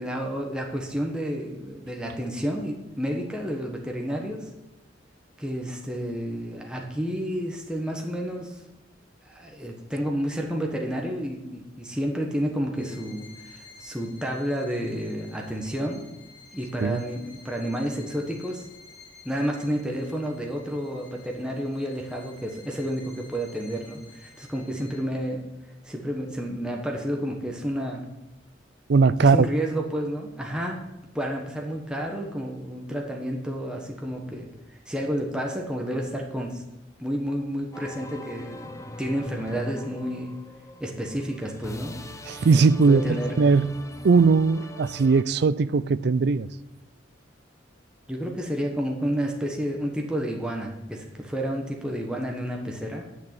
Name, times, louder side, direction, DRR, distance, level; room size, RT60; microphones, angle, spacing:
voice 1, 0.0-4.5 5.4-8.6 9.2-16.0 16.5-18.6 19.2-25.4 25.8-28.0 29.2-30.8 31.1-36.6 37.0-40.3 40.8-41.9 42.9-43.4 48.1-53.0, equal, 5° right, 1.2 m, -30 dB
Bowed string instrument, 12.7-25.2, left 4 dB, 85° left, 3.8 m, -52 dB
voice 2, 28.9-29.5 42.3-46.5, right 4 dB, 60° right, 0.4 m, -20 dB
sound 1, 37.7-45.2, left 1 dB, 15° left, 0.7 m, -41 dB
10.0 x 6.1 x 8.7 m
head